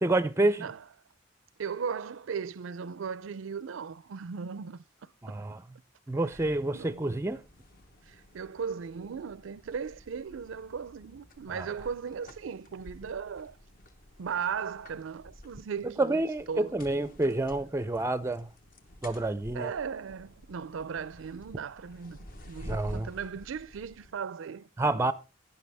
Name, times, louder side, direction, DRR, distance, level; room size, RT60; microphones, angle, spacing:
voice 1, 0.0-0.7 5.2-5.6 6.1-7.4 11.5-11.7 15.8-18.5 19.0-19.7 22.7-23.1 24.8-25.1, right 2 dB, 15° right, 0.4 m, -28 dB
voice 2, 1.6-4.8 5.3-5.4 6.7-7.2 8.1-13.6 14.2-16.7 17.2-17.4 19.5-22.2 22.5-25.1, right 6 dB, 80° right, 0.4 m, -37 dB
sound 1, 6.3-24.1, equal, 45° left, 1.1 m, -50 dB
11.5 x 9.9 x 3.4 m
head